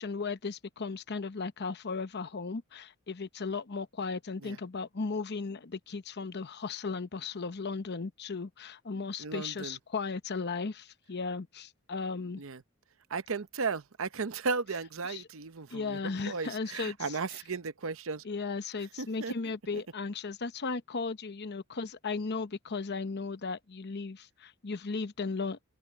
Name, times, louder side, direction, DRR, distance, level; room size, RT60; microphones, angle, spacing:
voice 1, 0.0-12.4 15.1-15.2 15.7-17.2 18.2-25.6, left 4 dB, 50° left, 0.8 m, -36 dB
voice 2, 9.2-9.8 12.4-12.6 13.1-18.2 19.0-19.8, right 4 dB, 65° right, 0.8 m, -35 dB
open air
head